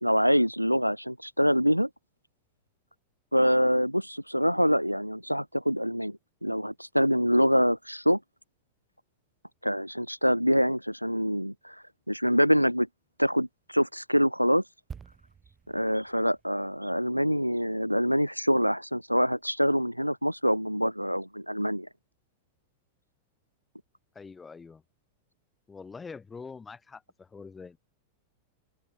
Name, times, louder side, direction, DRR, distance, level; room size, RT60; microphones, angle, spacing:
voice 1, 0.0-1.9 3.3-8.2 9.6-12.9 13.2-14.6 15.7-21.9, equal, 90° right, 0.3 m, -25 dB
sound 1, 14.9-18.5 18.8-19.0, right 6 dB, 20° right, 2.1 m, -50 dB
voice 2, 24.1-24.8 25.7-27.8, left 5 dB, 15° left, 3.2 m, -44 dB
open air
figure-of-eight pair, 90°, 0 cm